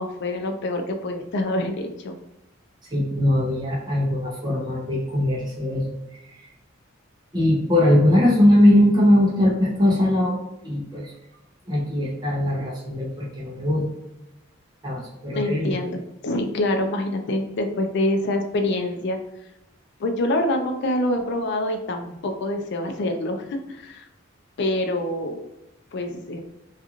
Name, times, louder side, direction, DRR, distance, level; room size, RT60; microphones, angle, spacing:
voice 1, 0.0-2.2 15.3-19.2 20.0-24.1 24.6-25.4 25.9-26.4, left 1 dB, 55° left, 5 dB, 0.4 m, -26 dB
voice 2, 2.9-5.9 7.3-10.4 10.6-11.1 11.7-13.9 14.8-15.7, left 1 dB, 20° right, -4 dB, 0.6 m, -20 dB
2.4 x 2.4 x 2.9 m, 0.93 s
head